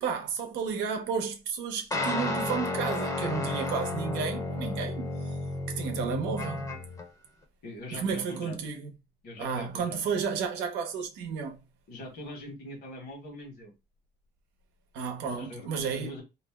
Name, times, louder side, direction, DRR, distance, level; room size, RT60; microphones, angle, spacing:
voice 1, 0.0-5.1 5.7-6.7 7.9-8.9 9.4-11.6 14.9-16.1, right 6 dB, 90° right, 0.7 m, -32 dB
sound 1, 1.9-7.1, left 2 dB, 20° left, 0.6 m, -32 dB
voice 2, 7.6-8.6 9.2-10.0 11.9-13.7 15.2-16.2, left 1 dB, 65° left, 1.2 m, -42 dB
2.5 x 2.0 x 3.4 m
cardioid pair, 110°, 17 cm